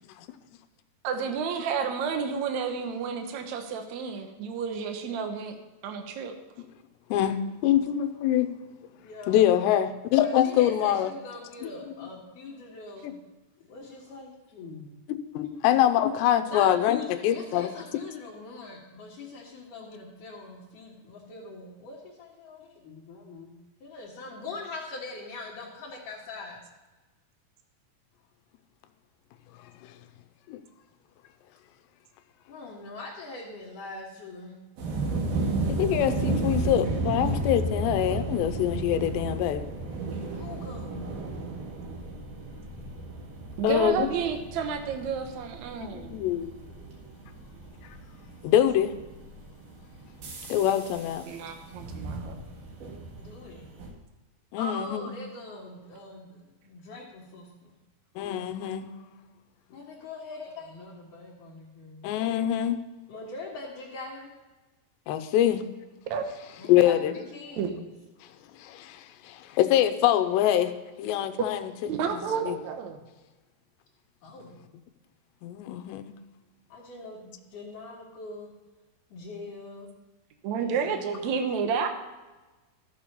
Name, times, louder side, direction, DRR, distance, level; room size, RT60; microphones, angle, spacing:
voice 1, 1.0-5.6 5.8-6.3 43.6-46.2 51.3-52.4 66.1-66.2 67.6-67.7 71.8-73.0 80.4-81.9, right 6 dB, 85° right, 5 dB, 1.6 m, -31 dB
voice 2, 7.1-8.5 9.3-11.1 11.6-11.7 13.0-13.1 15.3-17.7 30.5-30.6 35.7-39.7 43.6-44.1 45.8-46.5 48.4-48.9 50.5-51.2 54.5-55.1 58.2-58.9 62.0-62.8 65.1-65.6 66.7-67.1 68.6-70.7 71.0-71.7 72.1-72.6 75.4-76.1, left 11 dB, 80° left, 9 dB, 2.9 m, -24 dB
voice 3, 9.0-9.4 10.2-13.1 13.6-14.9 15.4-15.5 16.4-23.5 23.8-26.6 32.5-34.6 40.3-41.2 53.1-53.7 54.6-57.7 59.7-62.1 63.1-64.3 66.6-67.7 74.2-74.6 76.7-78.5 79.1-79.9 80.6-81.3, left 3 dB, 55° left, -5 dB, 2.8 m, -42 dB
sound 1, 34.8-53.9, right 2 dB, 55° right, 2.8 m, -33 dB
15.0 x 6.8 x 5.5 m, 1.2 s
omnidirectional pair, 5.0 m